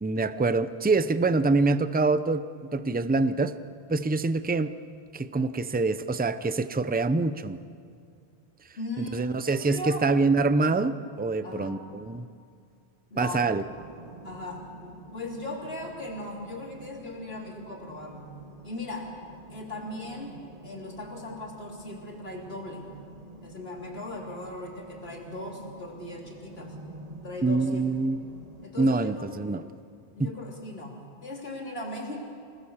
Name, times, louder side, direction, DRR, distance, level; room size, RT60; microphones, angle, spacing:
voice 1, 0.0-2.4 2.7-3.6 3.9-4.7 5.1-7.6 9.0-12.3 13.2-13.6 27.4-28.3 28.8-29.6 30.2-30.3, right 3 dB, 10° right, 12 dB, 0.4 m, -25 dB
voice 2, 8.8-10.1 11.4-11.8 13.1-13.5 14.2-18.3 18.6-19.1 19.5-20.4 20.6-22.9 23.4-26.8 27.2-27.8 28.6-29.6 30.2-32.2, left 1 dB, 65° left, -1 dB, 3.7 m, -38 dB
sound 1, 13.6-28.6, right 2 dB, 35° right, 1.5 m, -48 dB
26.5 x 19.0 x 7.2 m, 2.4 s
omnidirectional pair, 1.1 m